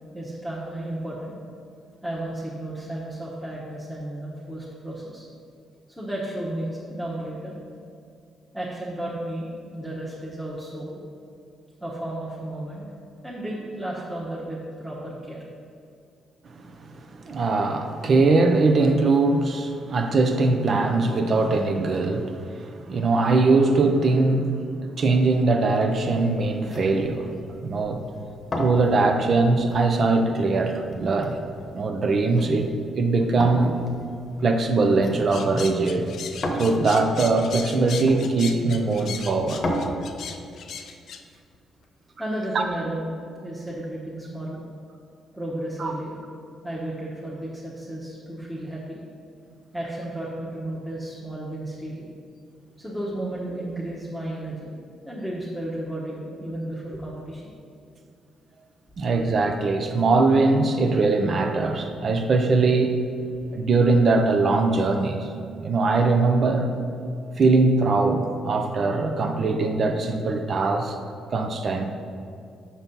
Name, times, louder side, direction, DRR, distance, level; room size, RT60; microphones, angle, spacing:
voice 1, 0.1-1.3 2.0-5.3 5.9-7.6 8.5-11.0 11.8-12.8 13.2-15.4 42.2-43.1 43.4-44.6 45.3-46.2 46.6-49.0 49.7-52.1 52.8-54.7 55.0-57.5, right 1 dB, ahead, -7 dB, 1.1 m, -33 dB
voice 2, 17.2-27.3 27.6-28.0 28.6-31.4 31.7-33.9 34.4-36.0 36.6-39.6 42.5-42.6 45.8-45.9 59.0-63.0 63.5-65.3 65.6-66.7 67.4-71.0 71.3-71.9, right 3 dB, 50° right, 5 dB, 0.6 m, -21 dB
sound 1, 25.9-39.8, left 1 dB, 35° left, 1.0 m, -37 dB
sound 2, 35.3-41.2, left 6 dB, 65° left, 0.4 m, -37 dB
6.0 x 4.2 x 5.3 m, 2.4 s
cardioid pair, 90°, 0 cm